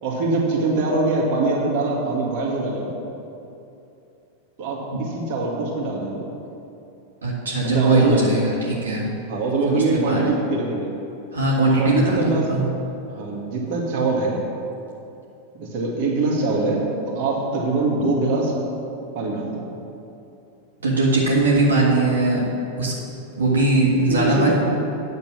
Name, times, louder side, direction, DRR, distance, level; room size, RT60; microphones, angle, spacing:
voice 1, 0.0-2.9 4.6-6.3 7.6-8.3 9.3-10.9 11.8-12.5 13.1-14.4 15.5-18.6 19.1-19.6 24.1-24.5, right 3 dB, 45° right, -2 dB, 2.0 m, -23 dB
voice 2, 7.2-9.0 9.7-10.2 11.3-12.6 20.8-22.4 22.8-22.9 23.4-24.5, right 2 dB, 70° right, -4 dB, 1.7 m, -20 dB
9.2 x 6.6 x 8.5 m, 2.8 s
figure-of-eight pair, 90°, 0 cm